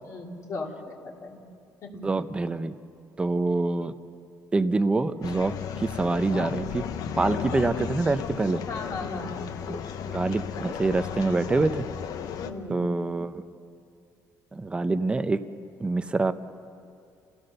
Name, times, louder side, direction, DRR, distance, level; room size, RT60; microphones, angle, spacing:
voice 1, 0.1-1.4 1.8-2.1 8.7-9.5 12.3-13.0, left 3 dB, 50° left, 0 dB, 2.6 m, -37 dB
voice 2, 2.0-2.8 3.2-3.9 4.5-6.8 7.2-8.6 9.7-11.9 12.7-13.4 14.5-15.4 15.8-16.3, right 3 dB, 15° right, 11 dB, 0.7 m, -26 dB
sound 1, 5.2-12.5, left 8 dB, 65° left, 0.9 m, -34 dB
28.0 x 16.0 x 6.7 m, 2.5 s
cardioid pair, 145°, 7 cm